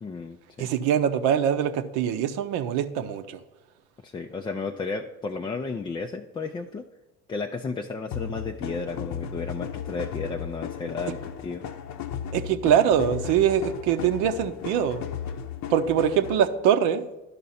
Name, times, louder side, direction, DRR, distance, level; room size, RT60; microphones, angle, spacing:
voice 1, 0.0-0.7 4.0-6.8 7.3-11.6, left 4 dB, 15° left, 3 dB, 0.3 m, -33 dB
voice 2, 0.6-3.4 12.3-15.0 15.7-17.0, right 9 dB, 60° right, 9 dB, 0.8 m, -23 dB
sound 1, 8.1-16.5, left 8 dB, 45° left, 0.7 m, -35 dB
11.5 x 5.4 x 4.1 m, 1.0 s
hypercardioid pair, 70°, 41 cm